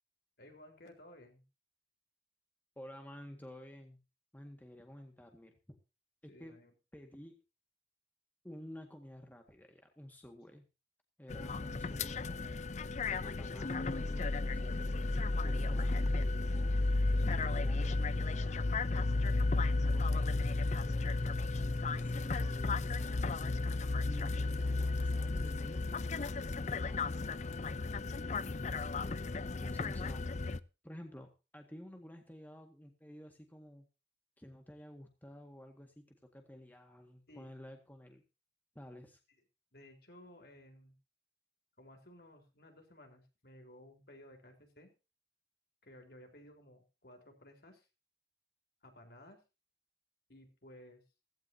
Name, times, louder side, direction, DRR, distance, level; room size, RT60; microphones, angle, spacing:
voice 1, 0.4-1.4 6.3-6.7 11.4-11.7 37.3-37.5 39.7-40.9 41.8-44.9 45.8-47.9 48.8-49.4 50.3-51.0, left 1 dB, 60° left, 3 dB, 4.3 m, -57 dB
voice 2, 2.8-4.0 4.3-5.8 6.2-6.6 6.9-7.4 8.4-10.7 11.2-12.7 13.2-15.0 15.4-16.8 17.3-18.7 19.3-21.2 22.0-23.7 24.0-26.0 29.6-30.3 30.8-33.9 34.4-36.1 36.3-38.2 38.8-39.2, equal, 10° left, 4 dB, 1.9 m, -52 dB
sound 1, 11.3-30.6, left 3 dB, 40° left, 0.6 m, -33 dB
16.0 x 16.0 x 2.8 m, 0.31 s
head